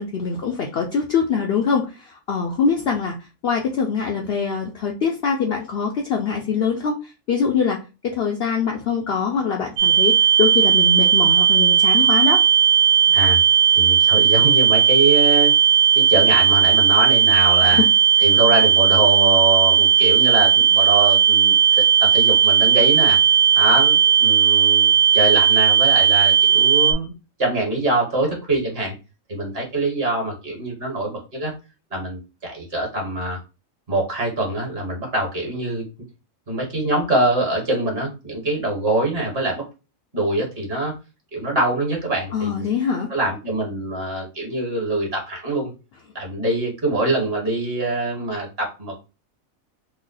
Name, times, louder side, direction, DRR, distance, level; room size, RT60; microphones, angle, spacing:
voice 1, 0.0-3.2 3.4-12.4 17.6-17.9 42.3-43.1, left 6 dB, 65° left, 1 dB, 0.6 m, -23 dB
sound 1, 9.8-26.9, right 8 dB, 80° right, 1.1 m, -16 dB
voice 2, 13.1-13.4 13.7-15.5 15.9-17.8 18.2-21.5 22.0-23.2 23.5-27.1 27.4-28.9 29.3-31.5 31.9-33.4 33.9-35.8 36.5-39.6 40.1-40.9 41.3-42.7 43.1-45.7 46.1-49.0, right 2 dB, 45° right, -1 dB, 1.4 m, -24 dB
3.1 x 2.0 x 3.8 m, 0.30 s
omnidirectional pair, 1.5 m